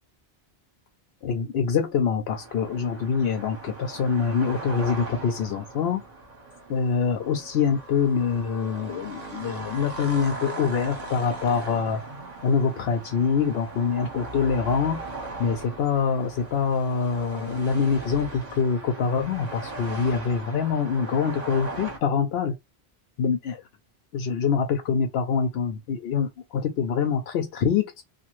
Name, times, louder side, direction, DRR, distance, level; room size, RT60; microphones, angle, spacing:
voice 1, 1.2-6.0 6.7-12.0 12.4-15.0 15.4-22.5 23.2-23.6 24.1-27.9, left 6 dB, 75° left, 0.8 m, -25 dB
sound 1, 2.3-22.0, right 2 dB, 40° right, 1.1 m, -39 dB
2.9 x 2.3 x 3.0 m
omnidirectional pair, 1.1 m